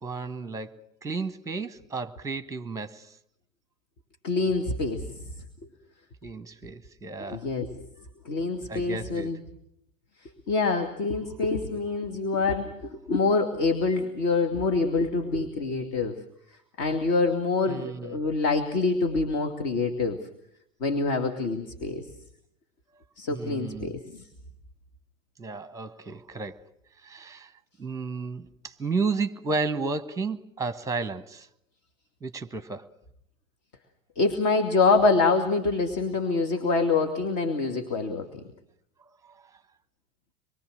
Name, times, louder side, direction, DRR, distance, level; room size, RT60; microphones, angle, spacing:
voice 1, 0.0-3.1 6.2-7.5 8.7-9.4 17.7-18.2 23.3-24.0 25.4-26.6 27.0-27.5 27.8-31.5 32.2-32.9 39.2-39.5, right 4 dB, 10° right, 1.3 m, -33 dB
voice 2, 4.2-5.2 7.3-7.9 8.2-9.4 10.5-16.2 16.8-20.2 20.8-22.0 23.2-24.2 34.2-38.3, left 3 dB, 45° left, 2.4 m, -26 dB
25.5 x 22.5 x 6.4 m
figure-of-eight pair, 95°, 39 cm